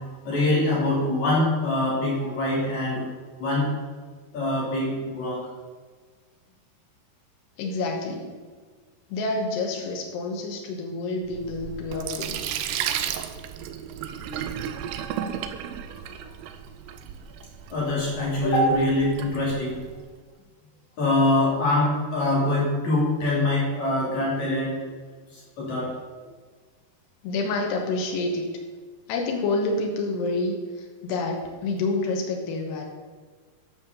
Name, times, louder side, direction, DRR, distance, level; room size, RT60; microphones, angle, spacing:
voice 1, 0.0-3.1 3.4-3.7 4.3-5.5 17.7-19.8 21.0-24.9 25.3-25.9, left 1 dB, 50° left, -5 dB, 3.8 m, -24 dB
voice 2, 7.6-8.4 9.1-12.4 27.2-28.5 29.1-32.9, left 2 dB, 90° left, 1 dB, 3.3 m, -28 dB
Sink (filling or washing), 11.2-20.0, right 9 dB, 85° right, 2.7 m, -34 dB
10.5 x 5.6 x 6.6 m, 1.5 s
omnidirectional pair, 4.7 m